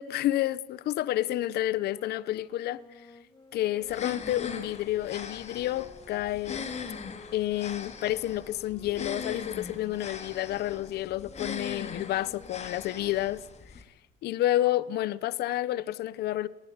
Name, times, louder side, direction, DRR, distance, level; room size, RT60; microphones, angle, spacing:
voice 1, 0.0-2.8 3.5-6.7 7.3-13.4 13.8-13.9 14.2-16.5, left 14 dB, 70° left, 0.9 m, -30 dB
sound 1, 1.7-7.4 8.0-13.6, left 3 dB, 25° left, 2.2 m, -55 dB
sound 2, 3.8-13.8, left 5 dB, 40° left, 3.5 m, -40 dB
29.5 x 20.0 x 9.4 m
cardioid pair, 110°, 17 cm